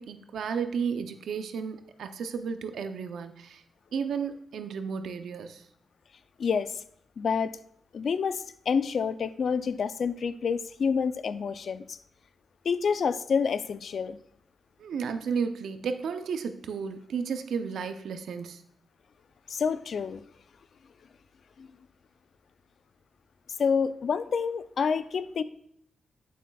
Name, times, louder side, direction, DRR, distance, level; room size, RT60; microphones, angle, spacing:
voice 1, 0.0-3.6 3.9-5.6 14.8-18.6, right 6 dB, 80° right, 9 dB, 0.5 m, -33 dB
voice 2, 6.4-6.8 7.2-7.6 7.9-12.0 12.6-14.2 19.5-20.2 21.6-21.8 23.6-25.4, left 6 dB, 60° left, 14 dB, 0.3 m, -28 dB
8.4 x 7.0 x 2.3 m, 0.68 s
cardioid pair, 95°, 0 cm